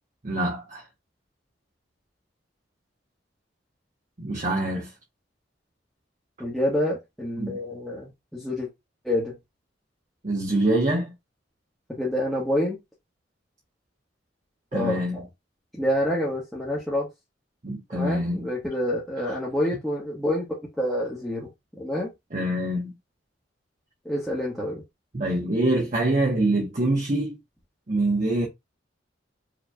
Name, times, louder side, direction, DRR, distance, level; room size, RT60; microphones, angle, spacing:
voice 1, 0.2-0.8 4.2-4.9 7.4-7.6 10.2-11.1 14.7-15.2 17.6-18.5 19.2-19.4 22.3-22.9 25.1-27.4 27.9-28.5, right 1 dB, 40° right, 1.0 m, -25 dB
voice 2, 6.4-8.7 9.0-9.4 11.9-12.8 14.7-15.2 15.7-17.1 17.9-20.5 20.8-21.5 21.7-22.1 24.0-24.8, left 1 dB, ahead, 1.2 m, -27 dB
5.0 x 3.1 x 2.3 m
head